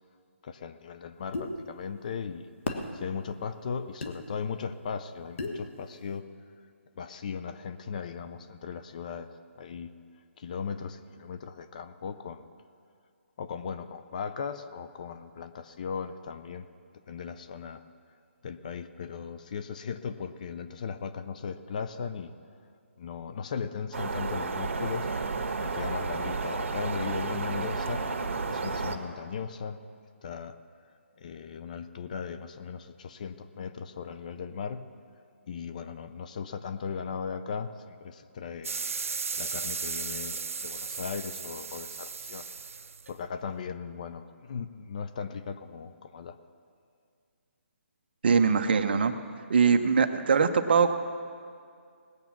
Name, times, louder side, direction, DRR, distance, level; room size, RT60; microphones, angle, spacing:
voice 1, 0.4-2.5 2.9-6.2 7.0-9.3 9.6-9.9 10.4-12.4 13.4-16.7 17.1-17.8 18.4-22.3 23.0-25.1 25.6-29.8 30.2-30.6 31.2-34.9 35.5-38.7 39.4-42.5 43.1-46.4, left 6 dB, 35° left, 11 dB, 0.5 m, -37 dB
sound 1, 1.3-1.5 2.7-2.9 4.0-4.1 5.4-5.6, left 3 dB, 60° left, 1.5 m, -32 dB
sound 2, 23.9-29.0, right 4 dB, 65° right, 1.5 m, -32 dB
sound 3, 38.6-43.6, right 5 dB, 80° right, 0.5 m, -36 dB
voice 2, 48.2-49.1 49.5-50.9, right 5 dB, 45° right, 8 dB, 0.8 m, -22 dB
19.0 x 8.2 x 5.9 m, 2.3 s
hypercardioid pair, 165°, 7 cm